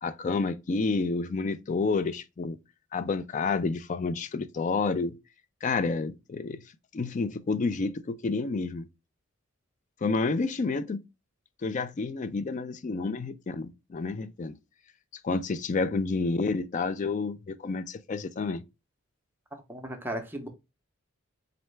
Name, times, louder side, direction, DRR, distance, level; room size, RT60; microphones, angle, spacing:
voice 1, 0.0-2.6 2.9-5.2 5.6-6.6 6.9-8.9 10.0-11.0 11.6-14.5 15.2-18.6, left 4 dB, 35° left, 0.3 m, -29 dB
voice 2, 19.7-20.5, right 1 dB, 10° right, 0.7 m, -35 dB
3.9 x 3.2 x 3.2 m
head